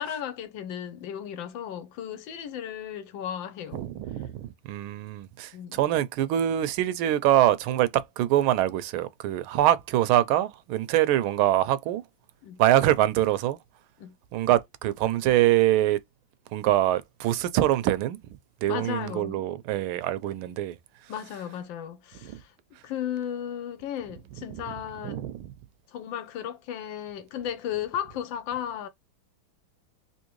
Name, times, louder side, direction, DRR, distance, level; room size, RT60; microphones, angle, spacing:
voice 1, 0.0-3.9 5.5-5.8 12.4-12.6 14.0-14.1 18.7-19.4 21.1-22.5 22.8-25.2 25.9-28.9, left 9 dB, 75° left, 1.2 m, -35 dB
voice 2, 3.7-12.0 12.6-13.6 14.3-16.0 16.5-18.2 18.6-20.8 22.2-22.4 24.5-24.6 25.0-25.4, right 13 dB, 80° right, 1.4 m, -24 dB
3.6 x 2.8 x 2.9 m
omnidirectional pair, 2.3 m